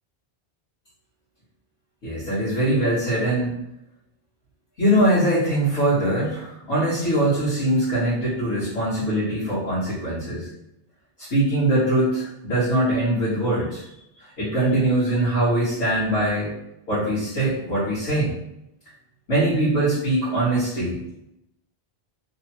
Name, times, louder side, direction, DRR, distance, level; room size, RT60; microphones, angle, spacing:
voice 1, 2.0-3.5 4.8-10.5 11.2-13.9 14.4-16.5 16.9-18.3 19.3-21.0, right 1 dB, 70° left, -13 dB, 1.6 m, -22 dB
3.1 x 2.1 x 2.9 m, 0.83 s
omnidirectional pair, 1.2 m